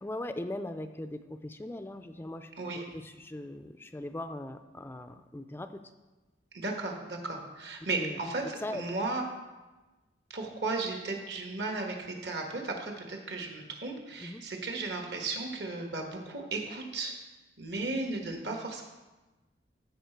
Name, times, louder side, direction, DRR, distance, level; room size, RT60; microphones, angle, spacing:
voice 1, 0.0-2.5 2.8-5.7 8.0-8.2 8.6-8.8 14.2-14.4, left 1 dB, 15° left, 9 dB, 0.3 m, -39 dB
voice 2, 2.6-2.9 6.5-9.2 10.3-17.1 17.6-18.8, right 3 dB, 70° right, 2 dB, 1.5 m, -35 dB
15.0 x 5.0 x 4.6 m, 1.2 s
head